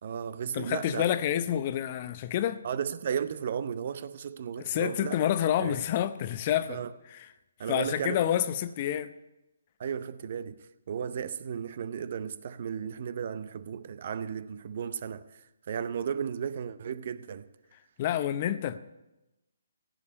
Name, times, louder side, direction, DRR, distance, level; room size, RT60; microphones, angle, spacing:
voice 1, 0.0-1.0 2.6-5.3 5.6-5.7 6.7-6.9 7.6-8.2 9.8-17.5, right 7 dB, 50° right, 0.6 m, -34 dB
voice 2, 0.5-2.6 4.6-6.8 7.7-9.1 18.0-18.8, left 11 dB, 35° left, 0.6 m, -28 dB
16.0 x 5.4 x 9.8 m
figure-of-eight pair, 145°, 0 cm